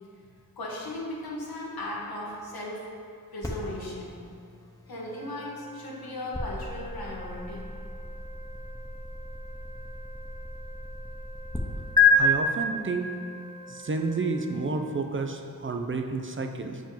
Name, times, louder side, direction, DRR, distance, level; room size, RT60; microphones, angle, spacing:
voice 1, 0.6-2.8 3.3-4.1 4.9-7.6, left 1 dB, 85° left, -4 dB, 1.4 m, -36 dB
sound 1, 3.4-11.6 12.0-12.1, left 8 dB, 10° left, 0.9 m, -31 dB
sound 2, 5.0-14.7, equal, 75° right, 1.7 m, -48 dB
voice 2, 12.1-13.1 13.7-16.8, right 3 dB, 35° right, 4 dB, 0.5 m, -30 dB
6.9 x 5.0 x 3.8 m, 2.3 s
cardioid pair, 60°, 36 cm